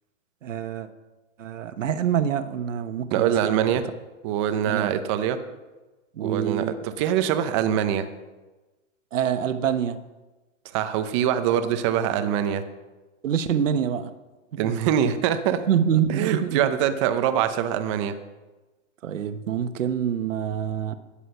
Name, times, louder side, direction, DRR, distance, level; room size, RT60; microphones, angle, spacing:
voice 1, 0.4-0.9 1.4-3.7 4.6-4.9 6.1-6.7 9.1-10.0 13.2-14.1 14.6-14.7 15.7-16.6 19.0-21.0, right 8 dB, 70° right, 10 dB, 1.2 m, -26 dB
voice 2, 3.1-3.8 4.2-5.4 6.2-8.1 10.6-12.6 14.6-15.6 16.1-18.1, right 9 dB, 25° right, 9 dB, 0.7 m, -24 dB
13.0 x 10.0 x 5.6 m, 1.2 s
hypercardioid pair, 155°, 39 cm